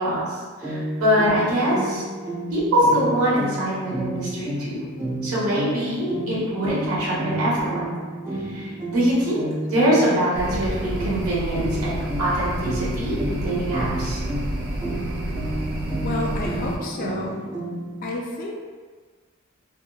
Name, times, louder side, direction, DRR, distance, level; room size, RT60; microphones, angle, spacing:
voice 1, 0.0-2.0 2.5-4.9 5.2-8.0 8.3-14.2, equal, 85° right, -8 dB, 1.0 m, -23 dB
sound 1, 0.6-18.1, right 1 dB, 15° right, 0.7 m, -31 dB
sound 2, 10.3-16.8, right 1 dB, 45° right, 0.3 m, -30 dB
voice 2, 16.0-17.4 18.0-18.6, left 2 dB, 40° left, -1 dB, 0.3 m, -30 dB
2.8 x 2.2 x 2.3 m, 1.5 s
head